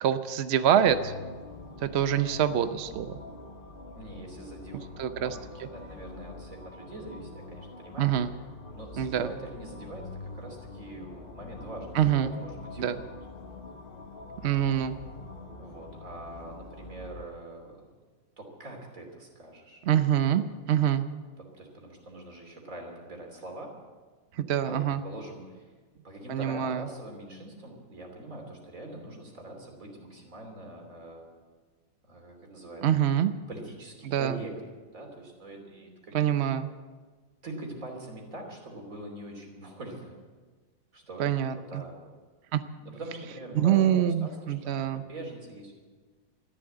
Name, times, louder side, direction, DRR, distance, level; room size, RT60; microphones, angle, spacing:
voice 1, 0.0-1.1 1.8-3.2 5.0-5.3 8.0-8.3 9.0-9.3 11.9-12.3 12.8-13.0 14.4-15.0 19.8-21.0 24.3-25.0 26.3-26.8 32.8-33.3 34.0-34.4 36.1-36.7 41.2-41.8 42.5-42.6 43.5-45.0, right 10 dB, 80° right, 11 dB, 0.5 m, -25 dB
sound 1, 0.9-17.3, left 3 dB, 35° left, 1.1 m, -45 dB
voice 2, 4.0-8.1 8.7-13.1 15.6-17.9 18.4-19.8 21.6-23.8 24.6-25.7 26.0-31.3 32.0-32.8 33.5-34.5 34.9-36.3 37.4-40.2 40.9-41.4 41.7-41.9 42.8-43.8 44.2-45.7, right 1 dB, 45° right, 1 dB, 3.4 m, -43 dB
13.5 x 11.5 x 7.9 m, 1.4 s
omnidirectional pair, 2.0 m